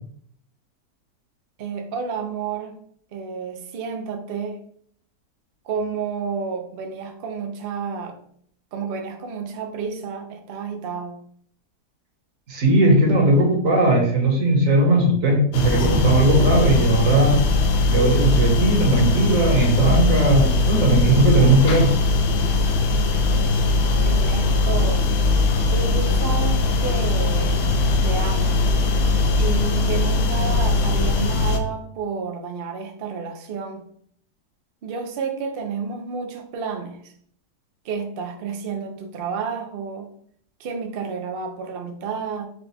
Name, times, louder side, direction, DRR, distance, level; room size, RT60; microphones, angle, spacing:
voice 1, 1.6-2.8 3.1-4.6 5.6-8.2 8.7-11.2 24.0-25.0 25.7-27.8 28.0-28.6 29.4-33.8 34.8-37.1 37.8-40.1 40.6-42.5, right 5 dB, 85° right, 4 dB, 0.5 m, -30 dB
voice 2, 12.5-17.4 17.9-21.9, right 2 dB, 55° right, 0 dB, 1.4 m, -18 dB
sound 1, 15.5-31.6, left 3 dB, 75° left, 0.5 m, -20 dB
4.3 x 2.2 x 4.1 m, 0.63 s
omnidirectional pair, 1.7 m